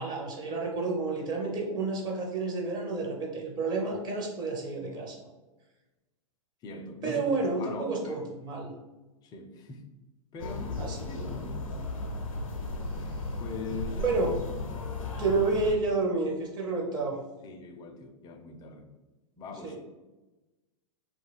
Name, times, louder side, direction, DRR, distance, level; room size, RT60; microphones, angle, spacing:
voice 1, 0.0-5.2 7.0-8.7 10.8-11.3 14.0-14.3 15.2-17.2 19.6-19.7, right 3 dB, 25° right, 0 dB, 0.6 m, -30 dB
voice 2, 6.6-7.3 7.6-8.2 9.2-9.9 10.3-11.8 13.4-14.2 17.4-18.9 19.4-19.8, left 3 dB, 25° left, 5 dB, 0.4 m, -42 dB
sound 1, 10.4-15.8, left 2 dB, 85° left, 0.5 m, -35 dB
2.3 x 2.3 x 3.3 m, 1.1 s
hypercardioid pair, 105°, 17 cm